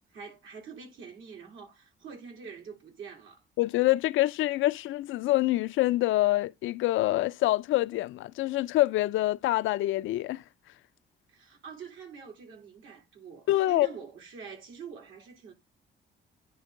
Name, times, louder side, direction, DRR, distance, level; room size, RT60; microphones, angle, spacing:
voice 1, 0.1-3.4 11.3-15.5, right 6 dB, 80° right, 3.0 m, -45 dB
voice 2, 3.6-10.4 13.5-13.9, left 16 dB, 80° left, 0.4 m, -26 dB
9.6 x 3.6 x 3.7 m
cardioid pair, 90°, 20 cm